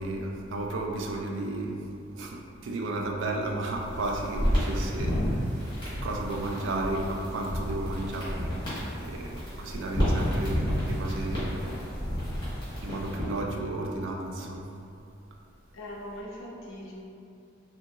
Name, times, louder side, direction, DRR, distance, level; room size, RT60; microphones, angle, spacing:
voice 1, 0.0-1.9 2.1-5.8 6.0-8.6 9.0-11.5 12.8-14.8, right 2 dB, 75° right, 0 dB, 0.4 m, -33 dB
sound 1, 3.6-13.4, equal, 25° left, 1.3 m, -31 dB
voice 2, 15.7-16.9, left 1 dB, 85° left, -3 dB, 0.5 m, -41 dB
2.8 x 2.6 x 2.7 m, 2.6 s
head